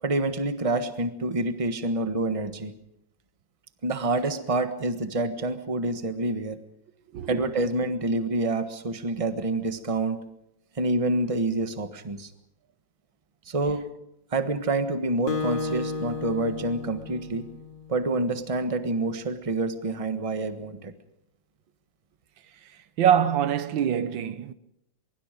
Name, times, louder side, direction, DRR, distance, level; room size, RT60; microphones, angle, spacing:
voice 1, 0.0-2.7 3.8-6.6 7.3-10.2 10.7-12.3 13.5-13.9 14.3-17.5 17.9-20.9, right 2 dB, 20° right, 1.3 m, -27 dB
Acoustic guitar, 15.3-18.0, left 4 dB, 30° left, 1.1 m, -33 dB
voice 2, 23.0-24.5, right 9 dB, 80° right, 1.7 m, -24 dB
24.0 x 23.0 x 5.2 m
omnidirectional pair, 2.0 m